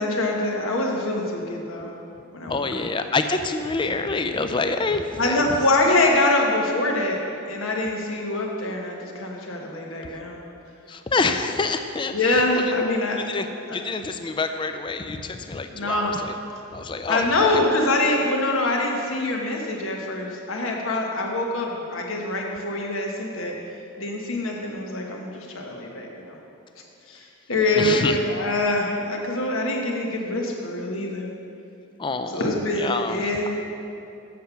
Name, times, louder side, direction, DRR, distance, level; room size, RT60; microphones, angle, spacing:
voice 1, 0.0-1.9 2.3-2.9 5.2-7.2 7.5-10.4 12.1-13.2 13.7-13.8 15.7-16.2 17.1-23.5 24.0-26.4 27.1-31.3 32.3-33.5, left 2 dB, 80° left, 0 dB, 1.3 m, -24 dB
voice 2, 2.5-5.5 10.9-12.6 13.2-16.4 16.7-17.3 17.5-17.6 27.7-28.2 32.0-32.4 32.7-33.5, left 3 dB, 25° left, 8 dB, 0.4 m, -27 dB
7.5 x 6.9 x 5.8 m, 2.7 s
head